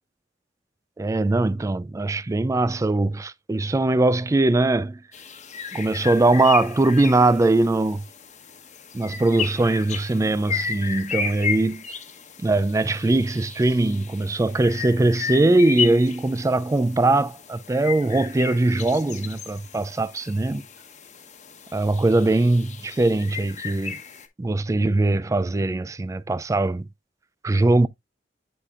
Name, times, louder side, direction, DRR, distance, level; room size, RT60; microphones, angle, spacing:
voice 1, 1.0-5.0 5.7-8.0 8.9-11.8 12.4-20.6 21.7-24.0 24.4-26.9 27.4-27.9, right 2 dB, 20° right, 0.3 m, -21 dB
sound 1, 5.1-24.3, left 7 dB, 40° left, 1.1 m, -34 dB
9.7 x 5.0 x 2.4 m
head